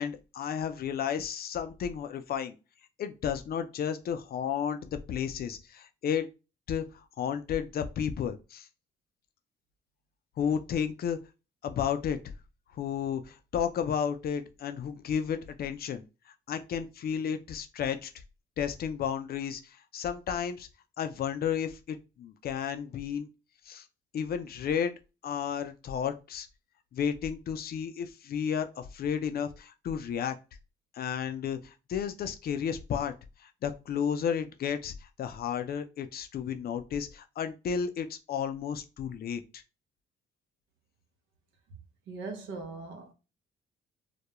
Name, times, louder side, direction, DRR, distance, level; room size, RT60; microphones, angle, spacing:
voice 1, 0.0-2.5 3.0-6.3 6.7-6.9 7.2-8.7 10.4-11.2 11.6-12.2 12.7-16.0 16.5-18.1 18.6-20.7 21.0-23.3 23.7-23.8 24.1-24.9 25.2-26.5 26.9-30.4 30.9-33.1 33.4-34.9 35.2-39.6, left 8 dB, 50° left, 0.4 m, -32 dB
voice 2, 42.1-43.1, right 3 dB, 85° right, 0.7 m, -40 dB
2.3 x 2.1 x 2.9 m
cardioid pair, 90°, 20 cm